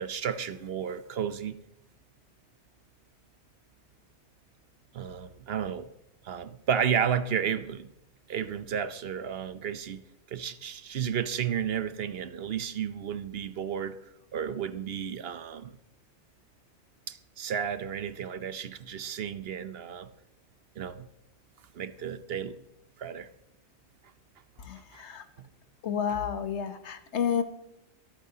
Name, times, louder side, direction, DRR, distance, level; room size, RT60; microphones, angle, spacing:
voice 1, 0.0-1.6 4.9-5.9 6.2-7.9 8.3-10.0 10.3-14.0 14.3-15.8 17.1-20.1 20.8-21.1 21.7-22.6 23.0-23.3 24.9-25.0 25.4-25.5, right 8 dB, 65° right, 0.9 m, -32 dB
voice 2, 24.6-25.3 25.8-27.4, left 7 dB, 80° left, 1.3 m, -30 dB
24.5 x 8.7 x 2.8 m
omnidirectional pair, 1.1 m